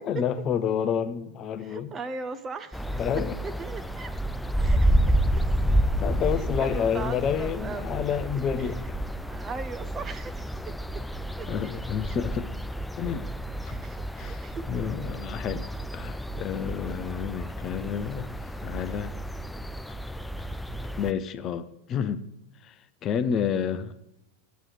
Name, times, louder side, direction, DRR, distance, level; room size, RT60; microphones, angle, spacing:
voice 1, 0.0-1.9 2.9-3.4 6.0-9.0 11.5-12.5 13.0-13.2 13.6-13.8 14.1-15.7 15.9-19.1 21.0-22.2 22.6-23.9, left 8 dB, 30° left, 0.6 m, -29 dB
voice 2, 1.6-3.0 3.4-4.1 4.6-5.2 6.6-7.9 8.6-8.7 9.3-11.0 11.4-11.5 12.1-12.2 13.6-14.6 16.8-17.1, right 4 dB, 20° right, 0.7 m, -39 dB
sound 1, 2.7-21.1, right 1 dB, 5° left, 0.3 m, -30 dB
17.0 x 9.2 x 3.2 m
figure-of-eight pair, 90°, 0 cm